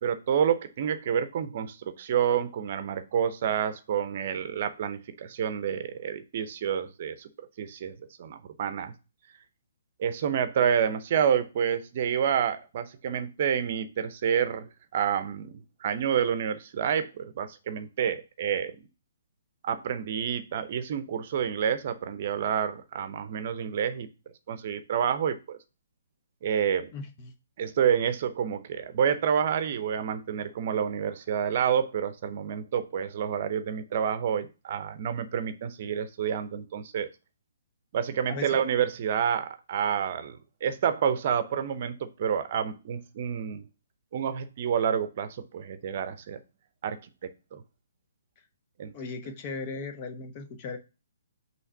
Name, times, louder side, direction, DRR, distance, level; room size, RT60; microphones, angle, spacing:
voice 1, 0.0-7.3 7.6-8.9 10.0-18.9 19.6-24.1 24.5-25.6 26.4-26.9 27.6-37.1 37.9-43.6 44.1-46.4 46.8-47.6 48.8-48.9, right 8 dB, 45° right, 0.7 m, -28 dB
voice 2, 26.9-27.3 38.3-38.5 48.9-50.8, left 4 dB, 30° left, 0.8 m, -37 dB
5.7 x 3.2 x 5.5 m
figure-of-eight pair, 130°, 0 cm